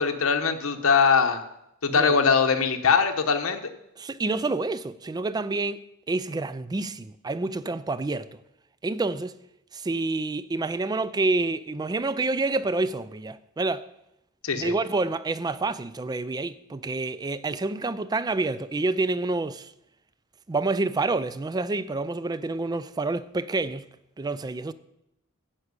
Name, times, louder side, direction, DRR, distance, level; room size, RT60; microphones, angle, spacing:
voice 1, 0.0-1.4 1.8-3.6 14.4-14.7, left 5 dB, 90° left, 1.0 m, -21 dB
voice 2, 4.0-8.3 8.8-9.4 9.7-13.9 14.6-19.7 20.5-23.9 24.2-24.7, right 3 dB, 20° right, 0.4 m, -28 dB
9.8 x 5.9 x 8.1 m
head